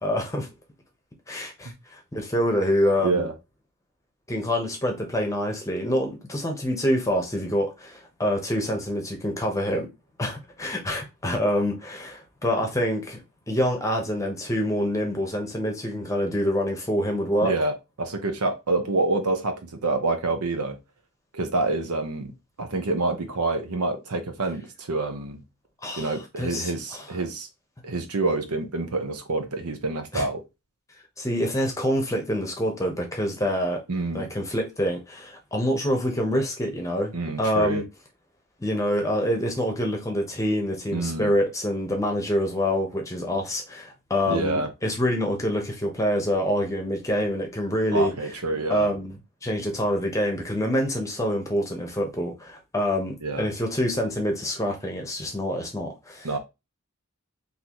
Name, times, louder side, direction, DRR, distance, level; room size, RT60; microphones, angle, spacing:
voice 1, 0.0-0.5 1.3-3.3 4.3-9.9 10.2-13.2 13.5-17.5 25.8-27.0 30.1-30.3 31.2-33.8 34.1-37.8 38.6-48.1 48.7-49.1 49.4-56.3, equal, 15° left, 0.8 m, -26 dB
voice 2, 3.0-3.3 17.4-20.8 21.3-25.4 26.0-27.5 27.8-30.4 33.9-34.3 37.1-37.8 40.9-41.3 44.3-44.7 47.9-48.9 53.2-53.5 56.2-56.4, right 3 dB, 85° right, 0.8 m, -27 dB
3.9 x 2.8 x 2.9 m
head